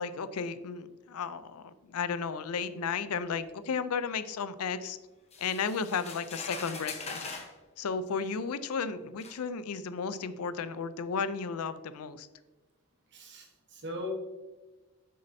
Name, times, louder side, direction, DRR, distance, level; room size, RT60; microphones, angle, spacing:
voice 1, 0.0-5.0 5.4-7.3 7.8-12.3, left 5 dB, 75° left, 14 dB, 0.5 m, -34 dB
sound 1, 5.3-7.5 8.5-8.6 9.2-9.4, left 4 dB, 30° left, 1.0 m, -42 dB
voice 2, 13.1-14.1, left 1 dB, 55° right, 1 dB, 1.2 m, -40 dB
8.1 x 6.4 x 2.7 m, 1.2 s
head